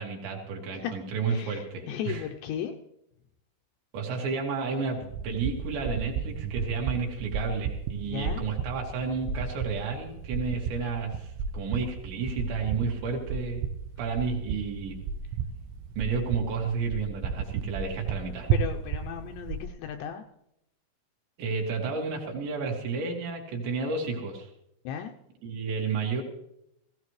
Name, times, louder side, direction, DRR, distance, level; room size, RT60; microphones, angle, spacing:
voice 1, 0.0-2.2 3.9-5.0 5.2-13.6 14.0-15.0 16.0-18.5 21.4-24.5 25.4-26.2, right 5 dB, 70° right, 0 dB, 4.0 m, -31 dB
voice 2, 1.3-2.7 8.0-8.4 18.5-20.2 24.8-25.1, left 9 dB, 80° left, 5 dB, 2.6 m, -35 dB
sound 1, 5.0-19.7, right 6 dB, 85° right, 3.3 m, -33 dB
18.0 x 16.0 x 3.2 m, 0.79 s
omnidirectional pair, 5.6 m